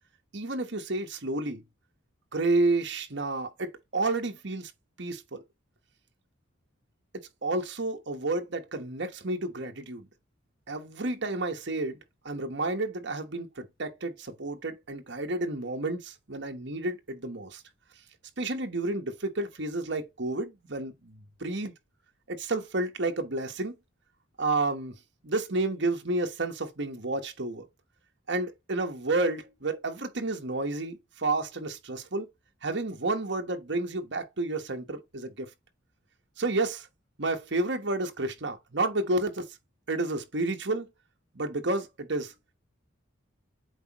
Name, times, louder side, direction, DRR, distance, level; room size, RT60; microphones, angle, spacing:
voice 1, 0.3-1.6 2.3-4.7 5.0-5.4 7.4-10.1 10.7-12.0 12.2-17.6 18.4-21.7 22.3-23.7 24.4-24.9 25.2-27.7 28.3-32.3 32.6-35.5 36.4-36.9 37.2-39.4 39.9-40.9 41.3-42.3, right 2 dB, 55° right, 1.1 m, -30 dB
8.0 x 4.4 x 3.0 m
head